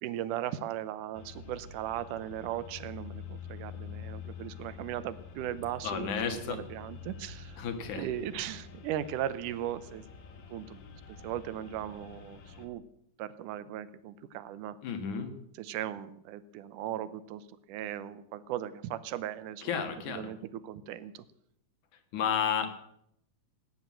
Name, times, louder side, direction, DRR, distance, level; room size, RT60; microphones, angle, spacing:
voice 1, 0.0-7.6 7.9-10.0 10.5-12.8 13.2-14.8 15.5-21.3, right 11 dB, 80° right, 14 dB, 2.3 m, -38 dB
sound 1, 1.1-12.7, left 6 dB, 85° left, 3.3 m, -47 dB
voice 2, 5.8-6.6 7.6-8.0 14.8-15.3 19.6-20.3 22.1-22.8, left 7 dB, 70° left, 7 dB, 3.1 m, -32 dB
17.0 x 10.0 x 7.4 m, 0.72 s
omnidirectional pair, 3.7 m